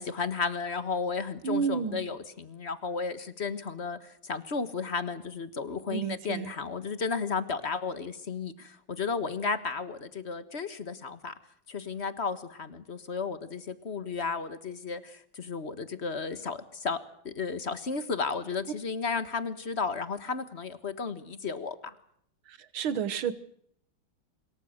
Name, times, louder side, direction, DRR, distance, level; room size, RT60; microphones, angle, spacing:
voice 1, 0.0-11.3 11.7-17.0 17.2-21.9, left 5 dB, 35° left, 12 dB, 1.6 m, -33 dB
voice 2, 1.4-2.0 5.9-6.5 22.5-23.3, right 7 dB, 85° right, 14 dB, 2.2 m, -31 dB
26.0 x 22.0 x 6.6 m, 0.69 s
omnidirectional pair, 2.2 m